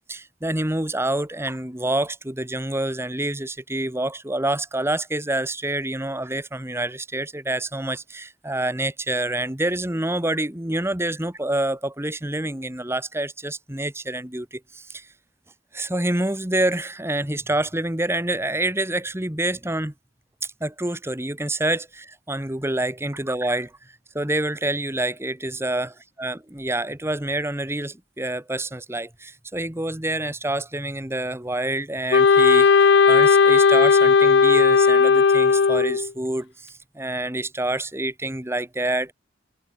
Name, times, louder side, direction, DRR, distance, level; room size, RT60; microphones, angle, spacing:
voice 1, 0.1-15.1 15.7-19.9 20.6-23.7 24.1-39.1, right 1 dB, 15° right, 1.6 m, -27 dB
Wind instrument woodwind instrument, 32.1-36.1, left 5 dB, 65° left, 0.5 m, -15 dB
head